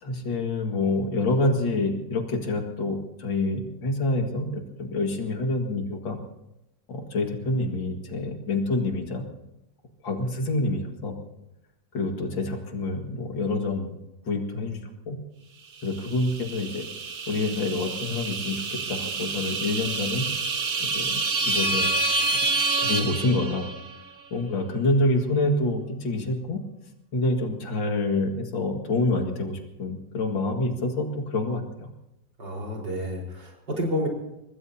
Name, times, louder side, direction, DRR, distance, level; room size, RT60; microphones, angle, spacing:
voice 1, 0.0-6.2 6.9-9.3 10.0-11.1 11.9-13.9 14.3-15.2 15.8-16.9 17.3-20.2 20.8-21.9 22.8-23.7 24.3-26.6 27.1-31.9, left 2 dB, 85° left, 3 dB, 2.7 m, -27 dB
sound 1, 15.9-24.0, right 3 dB, 40° right, 1.0 m, -28 dB
voice 2, 32.4-34.1, equal, 70° right, -1 dB, 5.1 m, -30 dB
25.0 x 20.0 x 2.8 m, 0.89 s
omnidirectional pair, 2.0 m